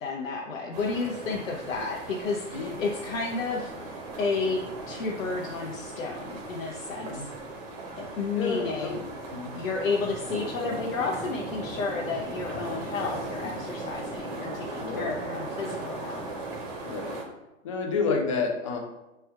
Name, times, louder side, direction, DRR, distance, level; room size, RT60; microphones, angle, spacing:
voice 1, 0.0-7.3 8.0-9.0 9.6-16.3, left 4 dB, 85° left, -1 dB, 0.7 m, -32 dB
sound 1, 0.7-17.2, right 2 dB, 30° right, 0.7 m, -38 dB
voice 2, 8.3-9.0 9.3-9.6 14.8-15.2 16.8-17.2 17.6-18.8, left 4 dB, 25° left, 2 dB, 0.4 m, -30 dB
3.3 x 2.3 x 4.4 m, 0.98 s
hypercardioid pair, 140°, 39 cm